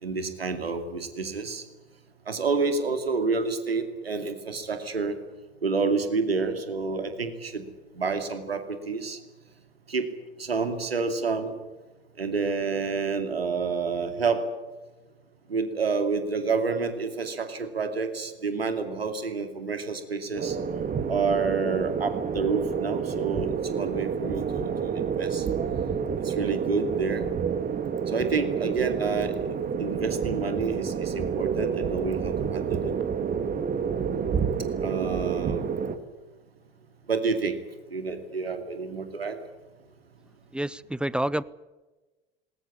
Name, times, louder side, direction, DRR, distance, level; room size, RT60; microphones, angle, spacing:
voice 1, 0.0-1.6 2.3-5.2 5.6-7.7 7.9-9.2 9.9-10.1 10.4-11.6 12.2-14.4 15.5-20.6 21.1-25.5 26.2-27.2 28.1-32.9 34.8-35.7 37.1-37.6 37.9-39.4, right 4 dB, 80° right, 8 dB, 2.5 m, -29 dB
sound 1, 20.3-36.0, right 7 dB, 30° right, 2.1 m, -29 dB
voice 2, 40.5-41.4, right 1 dB, 5° right, 21 dB, 0.7 m, -28 dB
20.5 x 19.0 x 10.0 m, 1.2 s
figure-of-eight pair, 70°, 30 cm